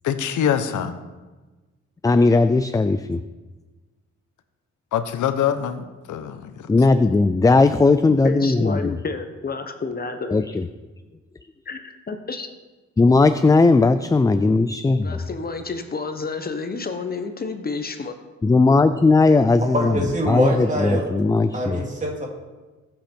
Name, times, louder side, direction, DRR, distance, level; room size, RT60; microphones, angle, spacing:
voice 1, 0.0-1.0 4.9-6.7, left 9 dB, 85° left, 9 dB, 1.1 m, -24 dB
voice 2, 2.0-3.2 6.7-8.9 10.3-10.7 13.0-15.2 18.4-20.0 20.2-21.8, left 3 dB, 10° left, 11 dB, 0.4 m, -17 dB
voice 3, 8.1-10.4 11.7-12.5 15.0-18.1 18.7-18.8, left 4 dB, 30° left, 7 dB, 1.0 m, -30 dB
voice 4, 19.7-21.1 21.5-22.3, equal, 25° right, -1 dB, 3.0 m, -24 dB
20.5 x 7.8 x 4.5 m, 1.2 s
cardioid pair, 125°, 29 cm